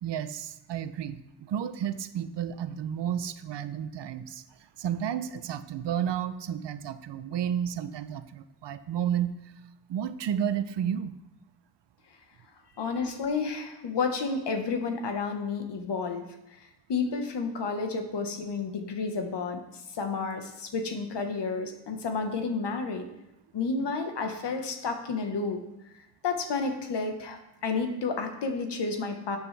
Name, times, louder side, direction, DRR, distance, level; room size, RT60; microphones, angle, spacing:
voice 1, 0.0-9.3 9.9-11.2, right 9 dB, 90° right, 12 dB, 0.7 m, -32 dB
voice 2, 12.8-16.2 16.9-19.6 19.9-23.1 23.5-25.6 26.2-29.4, left 4 dB, 85° left, 5 dB, 1.3 m, -31 dB
12.0 x 8.1 x 3.4 m, 0.91 s
wide cardioid pair, 135°, 41 cm